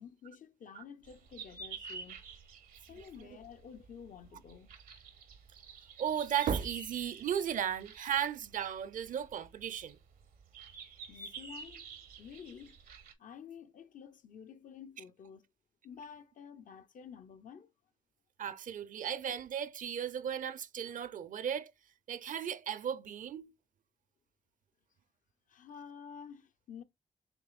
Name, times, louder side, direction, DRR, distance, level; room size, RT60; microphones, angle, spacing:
voice 1, 0.0-2.2 2.9-4.7 11.1-11.9 12.2-12.8 13.2-15.5 15.8-17.7 25.5-26.8, left 7 dB, 65° left, 0.6 m, -50 dB
sound 1, 1.1-13.1, right 4 dB, 80° right, 0.9 m, -49 dB
voice 2, 6.0-10.0 18.4-21.7 22.1-23.5, right 9 dB, 65° right, 0.5 m, -35 dB
6.0 x 3.0 x 2.4 m
supercardioid pair, 45°, 15 cm